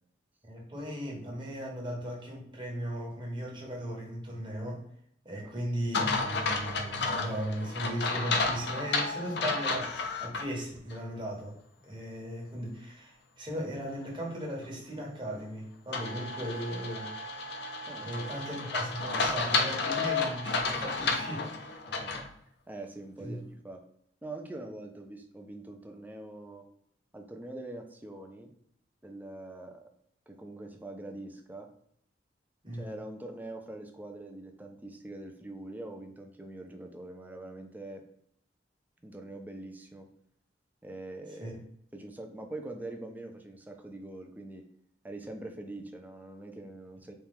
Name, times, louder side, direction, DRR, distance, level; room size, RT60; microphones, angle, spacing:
voice 1, 0.5-4.9 5.2-11.6 11.8-17.1 18.0-21.5 23.2-23.4 32.6-32.9 41.3-41.6, equal, 25° right, -2 dB, 1.2 m, -37 dB
sound 1, 5.9-10.4 10.9-11.0 15.9-22.3, left 3 dB, 65° left, 0.6 m, -32 dB
voice 2, 17.9-18.3 21.8-22.2 22.7-23.8 24.2-26.7 27.1-28.5 29.0-29.9 30.3-31.7 32.7-38.0 39.0-40.1 40.8-41.6 41.9-44.6 45.0-47.1, right 2 dB, 10° right, 4 dB, 0.4 m, -43 dB
4.3 x 2.4 x 3.5 m, 0.68 s
head